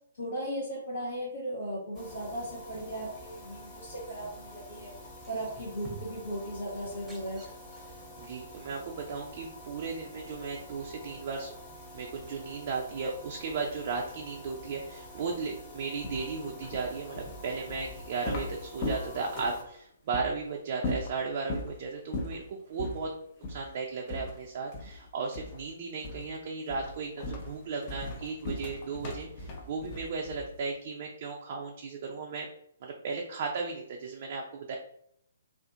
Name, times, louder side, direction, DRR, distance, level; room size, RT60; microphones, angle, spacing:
voice 1, 0.1-4.9 5.3-7.4, right 1 dB, 70° left, -6 dB, 0.8 m, -37 dB
sound 1, 1.9-19.6, left 1 dB, 20° left, 0.9 m, -48 dB
sound 2, 5.2-6.3 6.8-8.1 9.2-9.3, right 2 dB, 5° right, 0.7 m, -48 dB
voice 2, 8.2-11.5 11.9-23.1 23.5-32.5 32.8-34.8, right 4 dB, 45° right, 0 dB, 0.4 m, -35 dB
sound 3, 16.0-19.7 20.1-20.3 20.8-21.7 22.1-22.4 22.8-23.0 23.4-23.7 24.1-25.0 25.3-25.7 26.0-26.4 26.7-30.6, left 2 dB, 35° left, 0.5 m, -38 dB
2.5 x 2.4 x 2.4 m, 0.70 s
hypercardioid pair, 135°, 0 cm